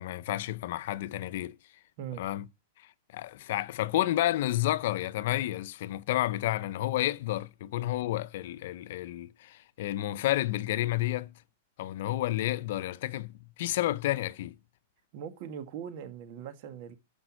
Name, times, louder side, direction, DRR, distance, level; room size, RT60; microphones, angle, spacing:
voice 1, 0.0-1.6 2.2-2.5 3.1-11.3 11.8-14.6, left 14 dB, 65° left, 0.6 m, -30 dB
voice 2, 15.1-16.9, right 9 dB, 55° right, 1.8 m, -40 dB
13.0 x 5.3 x 6.3 m
hypercardioid pair, 125°, 0 cm